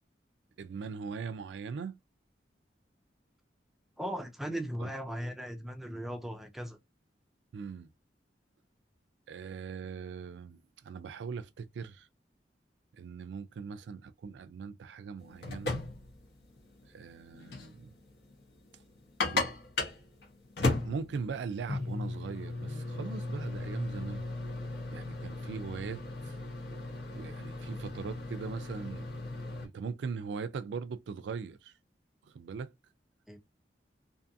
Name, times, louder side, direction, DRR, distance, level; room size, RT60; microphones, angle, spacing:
voice 1, 0.6-2.0 4.8-4.9 7.5-7.9 9.3-12.1 12.9-15.8 16.9-17.9 19.3-19.5 20.6-24.2 24.9-26.4 27.1-29.0 29.4-31.7 32.2-32.7, right 5 dB, 80° right, 0.3 m, -40 dB
voice 2, 4.0-6.8 33.3-33.4, equal, ahead, 0.3 m, -38 dB
sound 1, 15.2-29.7, left 2 dB, 65° left, 0.9 m, -37 dB
2.6 x 2.5 x 2.6 m
head